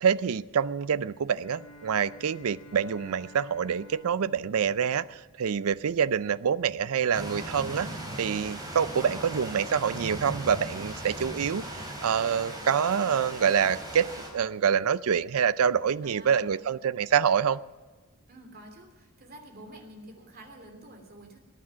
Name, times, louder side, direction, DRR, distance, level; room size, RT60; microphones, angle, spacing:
voice 1, 0.0-7.9 8.2-17.6, right 7 dB, 80° right, 17 dB, 0.4 m, -26 dB
Bowed string instrument, 1.4-5.8, equal, 90° left, 1.3 m, -52 dB
sound 1, 7.1-14.3, right 1 dB, 15° right, 4.0 m, -38 dB
voice 2, 16.0-16.7 18.3-21.4, right 1 dB, 40° right, 3 dB, 2.9 m, -49 dB
20.5 x 9.8 x 6.2 m, 1.4 s
head